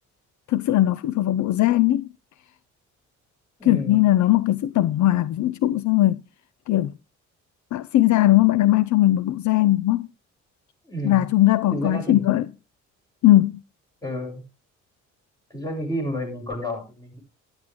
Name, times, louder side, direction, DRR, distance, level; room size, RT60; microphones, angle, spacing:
voice 1, 0.5-2.1 3.7-6.2 6.7-6.9 7.7-10.1 11.0-12.4 13.2-13.6, left 15 dB, 70° left, 0.6 m, -19 dB
voice 2, 3.6-4.0 10.8-11.2 11.7-12.2 14.0-14.4 15.5-17.2, equal, 10° left, 7.8 m, -30 dB
12.0 x 11.5 x 3.8 m
cardioid pair, 90°, 30 cm